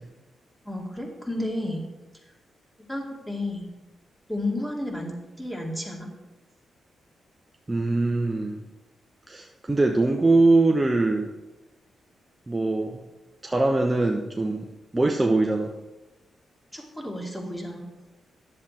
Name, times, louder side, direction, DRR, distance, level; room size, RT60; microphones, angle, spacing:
voice 1, 0.6-1.8 2.9-3.7 4.3-6.1 16.7-17.8, left 1 dB, 10° left, 0 dB, 2.5 m, -32 dB
voice 2, 7.7-8.6 9.3-11.3 12.5-13.0 13.4-14.7 14.9-15.7, right 2 dB, 20° right, 2 dB, 0.9 m, -22 dB
10.0 x 7.5 x 4.3 m, 1.1 s
supercardioid pair, 55°, 0 cm